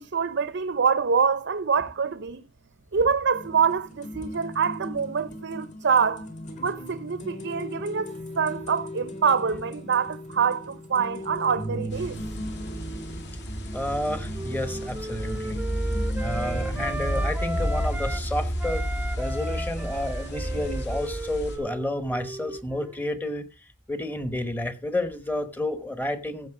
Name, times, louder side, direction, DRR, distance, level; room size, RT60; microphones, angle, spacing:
voice 1, 0.0-2.4 2.9-6.3 6.6-12.2, right 6 dB, 55° right, 0.6 m, -25 dB
sound 1, 3.3-17.3, equal, 35° left, 2.2 m, -38 dB
sound 2, 11.9-21.6, equal, 55° left, 2.6 m, -31 dB
voice 2, 13.7-15.6 16.2-18.8 19.2-23.5 23.9-26.5, left 1 dB, 10° left, 1.1 m, -30 dB
Wind instrument woodwind instrument, 13.7-18.2 18.6-23.1, right 1 dB, 10° right, 0.6 m, -36 dB
15.5 x 5.7 x 4.8 m
head